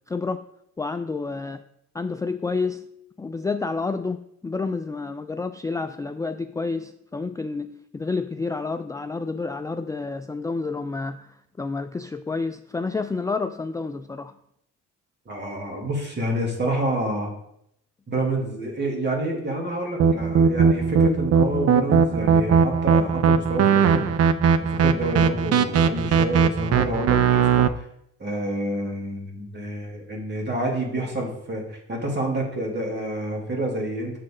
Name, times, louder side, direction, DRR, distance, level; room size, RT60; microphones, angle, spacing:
voice 1, 0.1-0.4 0.8-1.6 1.9-2.9 3.2-14.3, left 4 dB, 10° left, 9 dB, 0.3 m, -29 dB
voice 2, 15.3-17.3 18.1-24.1 24.6-27.7 28.2-34.2, right 1 dB, 35° right, -1 dB, 2.8 m, -28 dB
sound 1, 20.0-27.7, right 6 dB, 55° right, 0.6 m, -19 dB
7.2 x 6.6 x 3.9 m, 0.75 s
cardioid pair, 90°, 30 cm